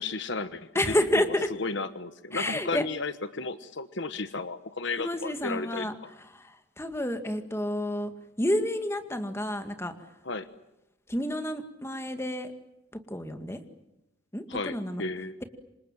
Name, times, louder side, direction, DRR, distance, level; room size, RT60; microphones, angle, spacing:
voice 1, 0.0-1.3 1.6-5.9 10.2-10.5 14.5-15.3, left 3 dB, 60° left, 12 dB, 1.2 m, -34 dB
voice 2, 0.8-1.5 2.3-2.8 5.0-5.9 6.3-6.5 6.8-8.1 8.4-9.9 11.1-12.5 13.1-13.6 14.3-15.0, left 1 dB, 10° left, 7 dB, 2.1 m, -29 dB
28.5 x 26.0 x 7.6 m, 0.93 s
head